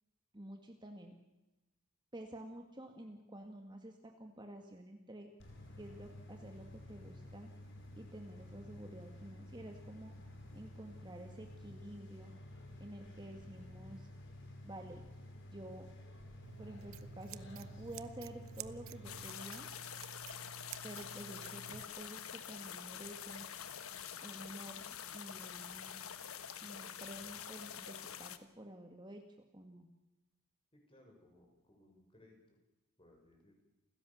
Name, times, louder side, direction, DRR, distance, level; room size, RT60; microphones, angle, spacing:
voice 1, 0.3-1.2 2.1-5.3 5.8-7.5 8.0-10.1 10.5-12.3 12.8-14.1 14.6-15.0 15.4-15.9 16.6-19.7 20.8-23.5 24.2-26.0 26.6-29.2 29.5-29.9, right 1 dB, 20° right, 4 dB, 1.8 m, -50 dB
sound 1, 5.4-19.2, left 1 dB, 55° left, 5.2 m, -52 dB
Scissors, 16.4-21.8, right 9 dB, 70° right, 0.9 m, -51 dB
sound 2, 19.0-28.4, left 9 dB, 75° left, 1.3 m, -47 dB
voice 2, 30.7-32.4 33.0-33.5, left 1 dB, 25° left, 1 dB, 6.2 m, -63 dB
29.0 x 16.0 x 7.2 m, 1.0 s
head